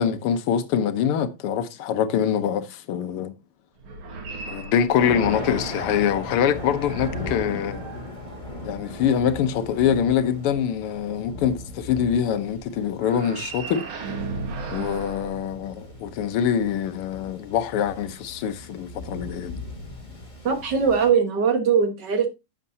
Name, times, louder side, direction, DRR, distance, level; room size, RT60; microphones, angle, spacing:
voice 1, 0.0-3.3 4.5-7.8 8.6-13.8 14.7-19.6, left 8 dB, 90° left, 1.8 m, -24 dB
sound 1, 3.8-5.8 6.4-8.9 13.0-16.1, right 4 dB, 70° right, 2.3 m, -37 dB
Thunder, 5.0-21.1, left 2 dB, 35° left, 3.2 m, -37 dB
voice 2, 20.4-22.3, right 6 dB, 55° right, 1.9 m, -21 dB
11.0 x 7.9 x 2.7 m
omnidirectional pair, 2.4 m